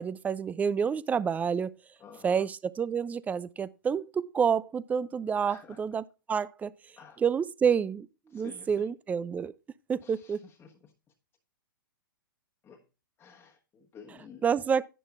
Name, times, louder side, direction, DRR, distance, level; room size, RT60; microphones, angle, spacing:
voice 1, 0.0-1.7 2.2-6.7 7.2-8.1 8.3-9.5 9.9-10.4 14.4-14.8, right 7 dB, 15° right, 0.4 m, -28 dB
voice 2, 2.0-2.4 5.4-5.8 7.0-7.2 8.3-8.8 10.0-10.9 12.6-12.8 13.2-14.4, left 6 dB, 20° left, 1.3 m, -51 dB
10.5 x 10.5 x 2.4 m
figure-of-eight pair, 105°, 12 cm